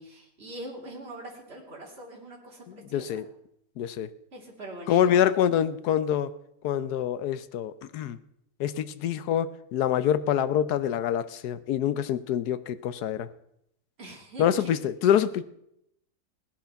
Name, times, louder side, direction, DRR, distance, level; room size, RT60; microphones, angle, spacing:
voice 1, 0.0-3.2 4.3-5.2 14.0-14.8, right 1 dB, 40° right, -2 dB, 3.2 m, -43 dB
voice 2, 2.9-3.3 3.8-4.1 4.9-6.3 6.6-8.2 8.6-13.3 14.4-15.4, left 10 dB, 80° left, 14 dB, 1.3 m, -25 dB
17.5 x 10.5 x 5.8 m, 0.79 s
omnidirectional pair, 1.7 m